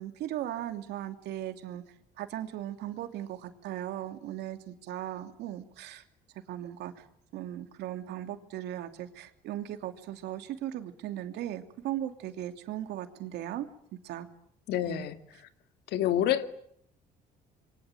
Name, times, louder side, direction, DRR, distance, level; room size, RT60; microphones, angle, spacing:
voice 1, 0.0-6.0 6.5-7.1 7.3-13.7 14.0-14.3 14.9-15.1, right 12 dB, 80° right, 7 dB, 2.9 m, -38 dB
voice 2, 14.7-15.2 15.9-16.4, left 11 dB, 80° left, 9 dB, 2.2 m, -27 dB
27.5 x 23.5 x 9.1 m, 0.71 s
cardioid pair, 110°, 17 cm